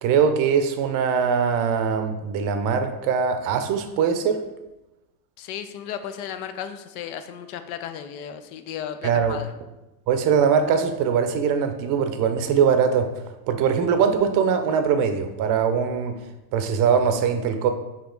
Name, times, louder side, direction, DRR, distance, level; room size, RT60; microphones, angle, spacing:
voice 1, 0.0-4.4 9.0-9.4 10.1-13.1 13.5-16.2 16.5-17.7, right 6 dB, 40° right, 8 dB, 0.6 m, -21 dB
voice 2, 5.4-9.5, left 9 dB, 65° left, 9 dB, 0.6 m, -34 dB
4.9 x 2.9 x 3.8 m, 0.99 s
supercardioid pair, 105°, 48 cm